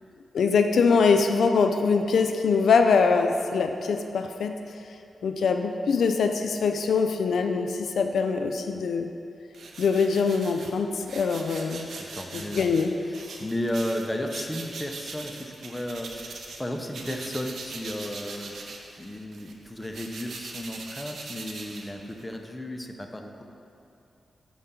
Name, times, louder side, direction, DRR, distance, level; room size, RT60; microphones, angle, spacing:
voice 1, 0.3-4.5 5.2-9.1 9.8-11.9 12.3-12.9, left 5 dB, 80° left, 6 dB, 0.3 m, -23 dB
sound 1, 9.5-16.6 16.9-22.3, right 3 dB, 75° right, 0.6 m, -41 dB
voice 2, 11.9-12.7 13.0-18.6 18.9-23.4, left 1 dB, 10° left, 3 dB, 0.6 m, -34 dB
6.7 x 5.6 x 3.6 m, 2.5 s
cardioid pair, 75°, 0 cm